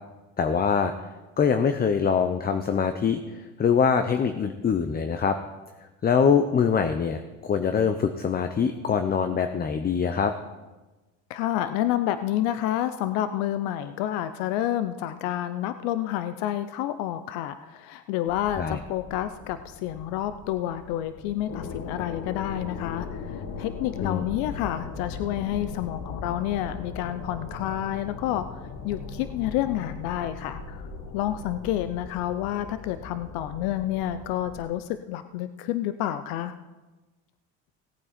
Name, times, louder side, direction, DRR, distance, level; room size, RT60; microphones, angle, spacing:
voice 1, 0.4-0.9 1.4-5.4 6.0-10.3 18.6-18.8 24.0-24.2, left 6 dB, 25° left, 8 dB, 0.7 m, -24 dB
voice 2, 11.3-28.6 28.8-30.9 31.1-36.5, left 12 dB, 80° left, 11 dB, 0.7 m, -29 dB
sound 1, 18.3-34.6, left 5 dB, 55° left, 1.6 m, -39 dB
17.5 x 8.7 x 4.3 m, 1.2 s
supercardioid pair, 105°, 34 cm